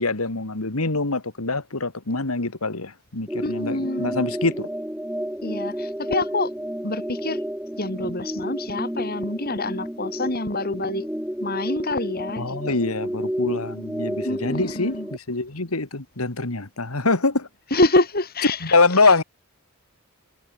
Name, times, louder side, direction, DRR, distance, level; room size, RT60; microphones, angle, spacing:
voice 1, 0.0-4.7 12.4-17.5 18.6-19.2, left 3 dB, 85° left, 2.3 m, -24 dB
sound 1, 3.3-15.2, equal, 5° right, 3.8 m, -31 dB
voice 2, 3.4-4.2 5.4-6.5 6.8-7.4 7.8-11.1 11.4-12.7 14.2-15.1 17.7-18.7 19.0-19.1, left 2 dB, 45° left, 3.8 m, -26 dB
head